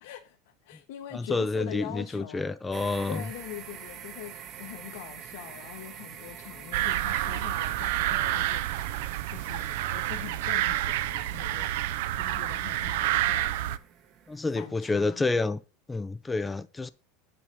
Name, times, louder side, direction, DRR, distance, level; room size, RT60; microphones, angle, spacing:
voice 1, 0.0-2.5 3.1-8.9 9.3-13.6 14.5-15.2, left 13 dB, 70° left, 1.4 m, -43 dB
voice 2, 1.1-3.3 14.3-15.6 15.9-16.9, left 3 dB, 10° left, 0.4 m, -29 dB
sound 1, 2.7-14.6, right 9 dB, 35° right, 1.0 m, -47 dB
sound 2, 6.7-13.8, right 14 dB, 70° right, 0.6 m, -29 dB
8.1 x 6.0 x 5.5 m
supercardioid pair, 160°, 0 cm